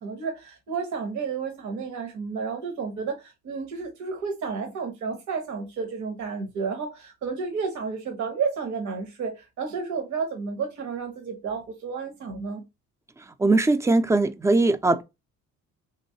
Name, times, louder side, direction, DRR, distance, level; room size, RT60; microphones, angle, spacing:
voice 1, 0.0-12.6, right 5 dB, 70° right, 0.9 m, -31 dB
voice 2, 13.4-15.0, right 2 dB, 10° right, 0.3 m, -20 dB
3.1 x 3.0 x 2.8 m
cardioid pair, 90°, 30 cm